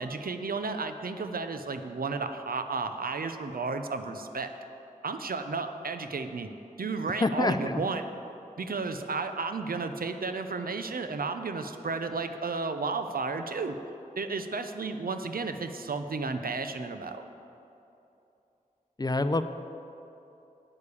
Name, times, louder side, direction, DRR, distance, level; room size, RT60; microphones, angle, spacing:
voice 1, 0.0-4.5 5.0-6.5 6.8-8.0 8.6-13.8 14.2-17.2, right 4 dB, 85° right, 8 dB, 0.6 m, -33 dB
voice 2, 7.2-7.8 19.0-19.4, left 2 dB, 25° left, 11 dB, 0.5 m, -26 dB
8.7 x 6.7 x 8.4 m, 2.9 s
wide cardioid pair, 55°, 15 cm